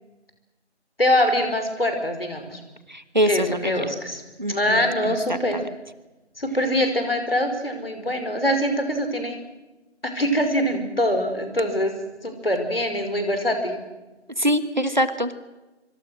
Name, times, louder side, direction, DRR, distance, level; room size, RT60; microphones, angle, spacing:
voice 1, 1.0-2.6 3.3-4.2 4.5-5.6 6.4-9.4 10.0-11.9 12.2-13.8, equal, 55° left, 6 dB, 5.2 m, -23 dB
voice 2, 2.9-3.7 4.4-5.7 14.4-15.4, equal, 40° right, 13 dB, 1.3 m, -24 dB
25.5 x 25.0 x 6.4 m, 1.1 s
figure-of-eight pair, 170°, 35 cm